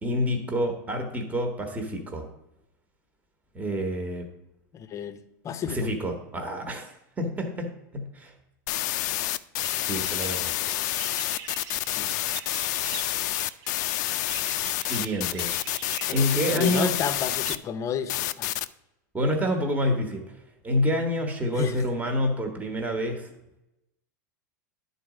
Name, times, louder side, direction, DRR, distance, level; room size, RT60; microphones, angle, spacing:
voice 1, 0.0-2.3 3.5-4.3 5.6-8.3 9.8-10.7 14.9-15.5 16.1-16.9 19.1-20.4 20.6-23.3, equal, 15° right, 4 dB, 1.2 m, -28 dB
voice 2, 4.7-5.9 11.9-12.2 16.1-16.2 16.6-18.5 21.5-21.8, left 8 dB, 30° left, 10 dB, 0.7 m, -31 dB
sound 1, 8.7-17.6 18.1-18.7, left 15 dB, 65° left, 0.4 m, -28 dB
sound 2, 9.6-17.6, right 7 dB, 45° right, 0.7 m, -43 dB
9.9 x 4.1 x 4.9 m, 0.91 s
hypercardioid pair, 115°, 10 cm